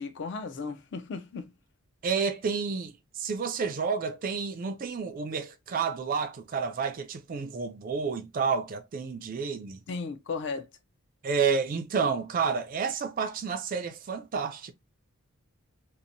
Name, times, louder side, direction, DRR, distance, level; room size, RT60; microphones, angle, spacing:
voice 1, 0.0-1.5 9.9-10.7, left 4 dB, 50° left, 0.4 m, -35 dB
voice 2, 2.0-9.8 11.2-14.7, right 5 dB, 40° right, 0.3 m, -30 dB
2.8 x 2.1 x 2.5 m
head